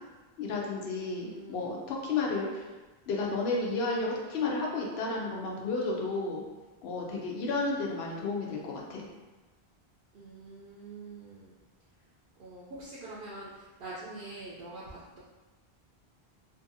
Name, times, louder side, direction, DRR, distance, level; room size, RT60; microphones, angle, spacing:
voice 1, 0.4-2.6 3.1-6.4 6.8-9.1, left 3 dB, 80° left, -2 dB, 0.8 m, -32 dB
voice 2, 1.2-1.8 10.1-11.5 12.4-15.2, right 2 dB, 70° right, -7 dB, 0.8 m, -45 dB
2.6 x 2.6 x 2.6 m, 1.2 s
omnidirectional pair, 1.1 m